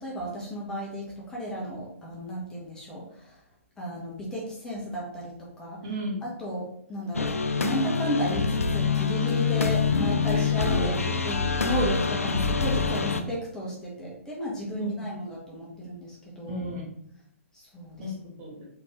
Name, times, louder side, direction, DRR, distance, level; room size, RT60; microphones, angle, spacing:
voice 1, 0.0-3.4 3.8-5.8 6.2-7.3 7.6-16.6 17.5-18.1, equal, 10° left, -5 dB, 1.4 m, -33 dB
voice 2, 5.8-6.2 9.4-9.5 10.3-10.9 14.8-15.1 16.5-17.0 18.0-18.7, equal, 30° right, -3 dB, 1.4 m, -36 dB
sound 1, 7.1-13.2, left 5 dB, 80° left, 0.5 m, -25 dB
4.5 x 3.8 x 3.1 m, 0.69 s
figure-of-eight pair, 125°, 8 cm